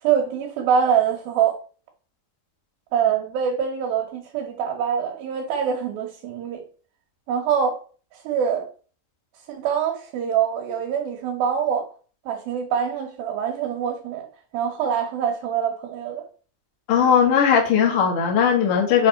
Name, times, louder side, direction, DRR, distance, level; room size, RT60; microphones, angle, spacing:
voice 1, 0.0-1.5 2.9-6.6 7.3-7.8 8.1-8.7 9.5-11.9 12.3-14.3 14.5-16.2, right 8 dB, 75° right, 2.7 m, -24 dB
voice 2, 16.9-19.1, left 7 dB, 55° left, 1.7 m, -18 dB
6.7 x 3.5 x 5.6 m
omnidirectional pair, 4.5 m